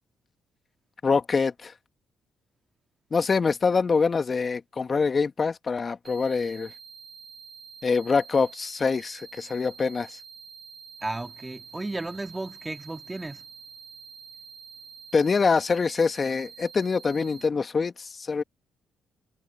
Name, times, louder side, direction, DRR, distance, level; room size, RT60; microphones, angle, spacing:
voice 1, 1.0-1.7 3.1-6.7 7.8-10.2 15.1-18.4, left 5 dB, 40° left, 1.9 m, -25 dB
sound 1, 6.0-17.5, right 6 dB, 50° right, 3.2 m, -47 dB
voice 2, 11.0-13.4, right 2 dB, 20° right, 2.1 m, -34 dB
supercardioid pair, 60°, 0 cm